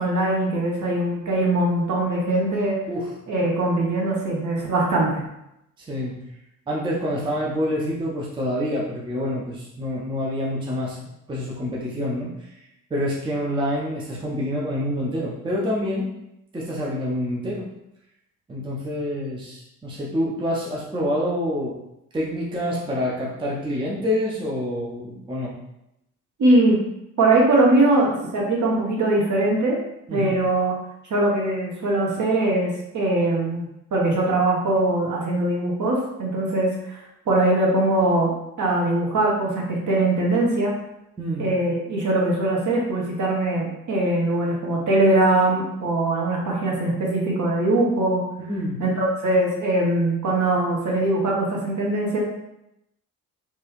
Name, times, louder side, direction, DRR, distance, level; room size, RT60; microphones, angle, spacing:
voice 1, 0.0-2.7 3.3-5.2 26.4-26.8 27.2-29.8 30.1-30.7 31.1-33.7 33.9-37.0 37.3-38.3 38.6-40.7 41.4-48.2 48.8-52.2, right 2 dB, 40° right, -2 dB, 1.0 m, -21 dB
voice 2, 5.8-6.2 6.7-11.0 11.3-12.6 12.9-16.1 16.5-17.7 18.5-21.8 22.1-25.5 30.1-30.3 41.2-41.5 48.5-48.8, left 1 dB, 10° right, -4 dB, 0.6 m, -27 dB
2.9 x 2.3 x 3.0 m, 0.85 s
figure-of-eight pair, 45°, 44 cm